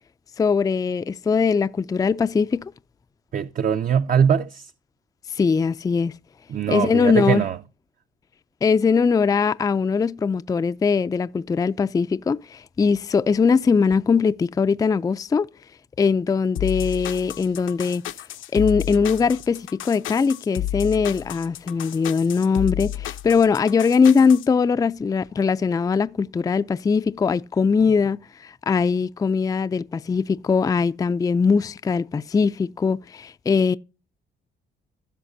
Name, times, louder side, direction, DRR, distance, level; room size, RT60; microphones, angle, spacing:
voice 1, 0.4-2.7 5.3-6.1 6.7-7.5 8.6-15.5 16.0-18.0 18.5-33.8, left 5 dB, 20° left, 0.3 m, -21 dB
voice 2, 3.3-4.7 6.5-7.6, right 8 dB, 45° right, 0.5 m, -21 dB
sound 1, 16.6-24.5, left 12 dB, 80° left, 0.7 m, -31 dB
15.5 x 5.9 x 2.6 m
cardioid pair, 90°, 20 cm